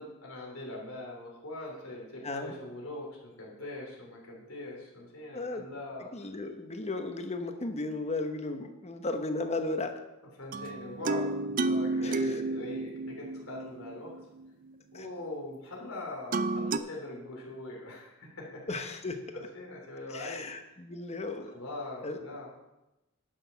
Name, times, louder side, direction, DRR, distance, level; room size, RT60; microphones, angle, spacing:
voice 1, 0.0-6.3 8.3-8.5 10.4-14.1 14.9-18.6 19.3-20.4 21.5-22.5, left 2 dB, 85° left, -2 dB, 3.3 m, -42 dB
voice 2, 2.2-2.5 5.3-5.7 6.1-9.9 12.0-12.4 14.9-15.1 18.7-19.4 20.1-21.5 22.0-22.2, left 2 dB, 30° left, 6 dB, 1.0 m, -35 dB
sound 1, 10.5-14.5 16.3-16.8, right 3 dB, 40° right, 0.4 m, -31 dB
11.0 x 6.3 x 5.7 m, 0.97 s
head